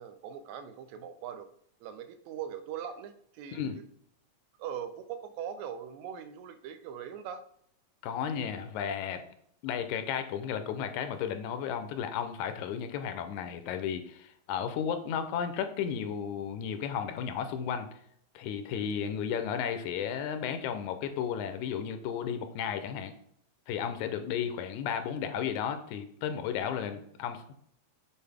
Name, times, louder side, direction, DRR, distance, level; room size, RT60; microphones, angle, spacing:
voice 1, 0.0-1.5 1.8-3.6 4.6-7.4, right 8 dB, 80° right, 10 dB, 1.9 m, -41 dB
voice 2, 8.0-9.3 9.6-17.9 18.4-23.1 23.7-27.5, left 8 dB, 85° left, 9 dB, 2.1 m, -33 dB
7.6 x 4.2 x 3.4 m, 0.69 s
omnidirectional pair, 3.3 m